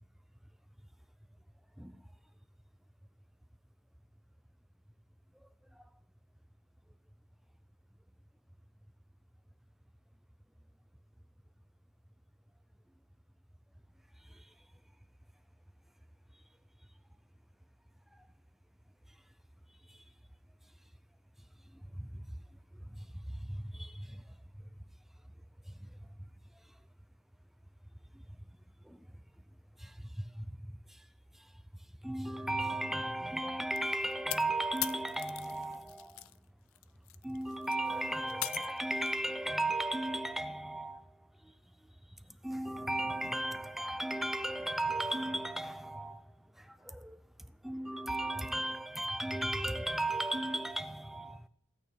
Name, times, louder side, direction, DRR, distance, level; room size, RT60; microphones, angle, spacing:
voice 1, 22.0-22.4 23.0-24.2 25.7-25.9 28.8-29.0 29.8-31.0 32.0-36.3 37.2-41.1 41.4-41.5 42.3-47.2 47.6-51.5, right 1 dB, ahead, 0.4 m, -36 dB
sound 1, 33.8-36.4 36.7-39.2, left 16 dB, 80° left, 0.4 m, -41 dB
15.5 x 9.0 x 3.2 m
head